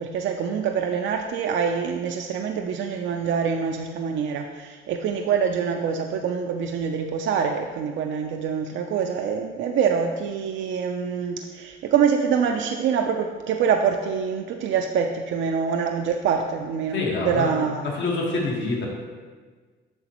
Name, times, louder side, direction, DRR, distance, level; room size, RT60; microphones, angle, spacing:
voice 1, 0.0-17.9, right 6 dB, 70° right, 3 dB, 0.5 m, -25 dB
voice 2, 16.9-17.5 17.8-18.9, left 3 dB, 70° left, -2 dB, 1.5 m, -26 dB
7.8 x 6.1 x 3.0 m, 1.4 s
cardioid pair, 90°, 20 cm